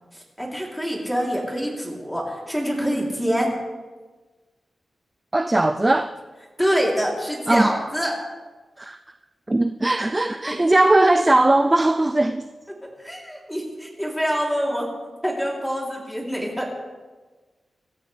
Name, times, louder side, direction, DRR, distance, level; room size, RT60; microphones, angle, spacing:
voice 1, 0.4-3.5 6.6-8.1 13.0-14.8 15.2-16.7, equal, 5° left, 3.3 m, -25 dB
voice 2, 5.3-6.1 7.5-7.7 8.8-9.0 9.5-12.5, right 2 dB, 15° right, 0.4 m, -19 dB
25.5 x 13.5 x 3.4 m
wide cardioid pair, 160°, 0 cm